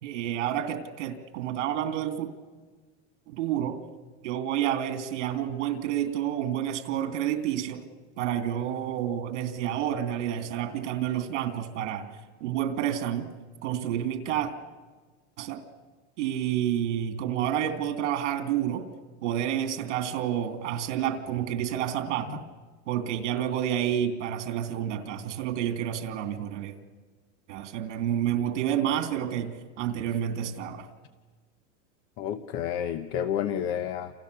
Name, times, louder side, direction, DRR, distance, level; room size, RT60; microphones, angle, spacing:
voice 1, 0.0-2.3 3.3-3.8 4.2-7.8 8.2-12.1 12.4-13.3 13.6-14.5 15.4-15.6 16.2-18.9 19.2-22.4 22.9-26.7 27.5-30.9, right 10 dB, 75° right, 6 dB, 2.9 m, -29 dB
voice 2, 32.2-34.1, left 9 dB, 35° left, 10 dB, 0.9 m, -30 dB
29.0 x 29.0 x 6.8 m, 1.3 s
supercardioid pair, 180°, 36 cm